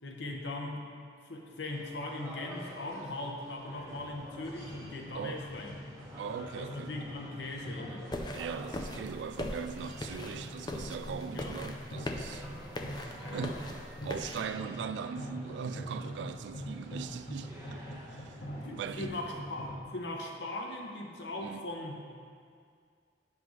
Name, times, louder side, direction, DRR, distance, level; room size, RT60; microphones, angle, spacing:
voice 1, 0.0-0.8 1.2-5.7 6.6-8.1 11.3-11.5 13.1-13.6 15.9-16.1 18.4-22.0, left 2 dB, 80° left, 1.0 m, -40 dB
sound 1, 1.7-18.9, right 1 dB, 15° right, 1.1 m, -51 dB
sound 2, 3.7-19.8, equal, 55° left, 1.1 m, -45 dB
voice 2, 6.2-6.9 8.3-12.5 13.0-18.4 18.8-19.1 21.4-21.6, right 6 dB, 80° right, 0.3 m, -40 dB
sound 3, 8.1-14.5, left 1 dB, 25° left, 0.4 m, -40 dB
10.5 x 5.9 x 3.2 m
head